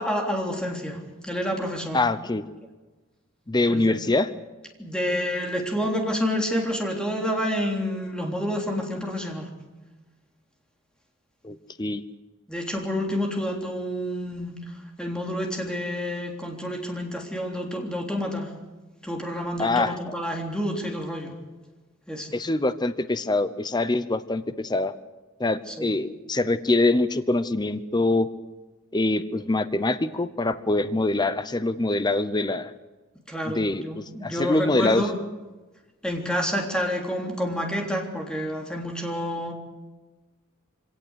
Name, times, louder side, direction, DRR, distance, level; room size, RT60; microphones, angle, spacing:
voice 1, 0.0-2.0 3.7-4.0 4.8-9.5 12.5-18.5 19.0-21.3 22.1-22.3 25.7-26.0 33.3-35.1 36.0-39.5, equal, 5° left, 1 dB, 3.4 m, -29 dB
voice 2, 1.9-2.4 3.5-4.3 11.4-12.0 19.6-20.1 22.3-24.9 25.4-28.3 28.9-32.7 33.5-35.0, left 2 dB, 20° left, 12 dB, 0.8 m, -24 dB
25.0 x 18.0 x 8.1 m, 1.2 s
head